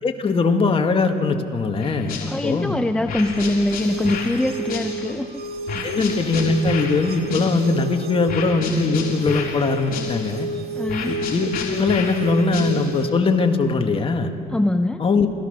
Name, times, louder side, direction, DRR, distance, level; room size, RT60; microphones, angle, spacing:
voice 1, 0.0-2.8 5.8-10.5 11.0-14.3 15.0-15.3, left 4 dB, 30° left, 5 dB, 1.7 m, -21 dB
sound 1, 1.8-2.7 3.1-5.3 5.7-7.9 8.3-10.5 10.9-13.1, left 5 dB, 55° left, 3.5 m, -32 dB
voice 2, 2.3-5.4 5.7-5.9 10.8-11.2 14.5-15.0, left 1 dB, 5° left, 8 dB, 0.5 m, -23 dB
sound 2, 3.1-13.1, right 3 dB, 65° right, 2.0 m, -31 dB
29.5 x 14.0 x 6.6 m, 2.6 s
cardioid pair, 110°, 17 cm